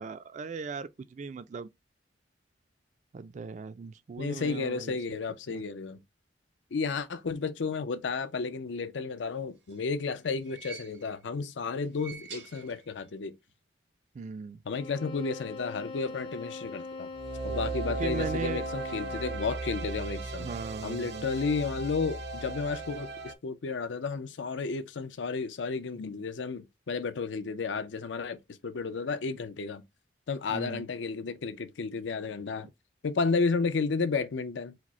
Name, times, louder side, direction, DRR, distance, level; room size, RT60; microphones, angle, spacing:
voice 1, 0.0-1.7 3.1-5.0 5.5-5.6 14.2-14.6 18.0-18.6 20.4-21.3 30.5-30.8, right 4 dB, 40° right, 0.3 m, -38 dB
voice 2, 4.2-6.0 6.7-13.3 14.6-17.1 17.4-20.6 20.8-29.8 30.3-32.7 33.0-34.7, left 4 dB, 80° left, 0.5 m, -32 dB
sound 1, 9.4-11.3 11.8-13.2 13.5-13.6 14.7-14.8, right 6 dB, 80° right, 1.1 m, -48 dB
sound 2, 14.7-19.6, left 3 dB, 25° left, 0.5 m, -42 dB
sound 3, 17.1-23.3, right 2 dB, 65° right, 0.7 m, -36 dB
4.8 x 2.0 x 4.2 m
head